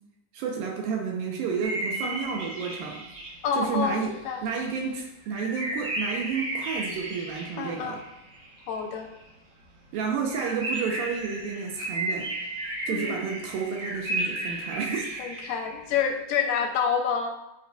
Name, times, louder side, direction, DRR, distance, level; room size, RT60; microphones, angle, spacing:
voice 1, 0.3-3.0 3.6-4.1 4.4-8.0 9.9-12.3 12.9-15.2, right 6 dB, 80° right, 1 dB, 2.2 m, -31 dB
sound 1, 1.6-4.4 4.7-4.8 5.3-9.2 9.6-9.7 9.9-10.0 10.3-15.9, right 1 dB, 45° right, 3.2 m, -34 dB
voice 2, 3.4-4.4 7.6-8.0 8.7-9.1 12.9-13.2 15.2-17.3, left 6 dB, 80° left, 3 dB, 2.4 m, -28 dB
10.0 x 5.3 x 2.2 m, 0.94 s
omnidirectional pair, 4.5 m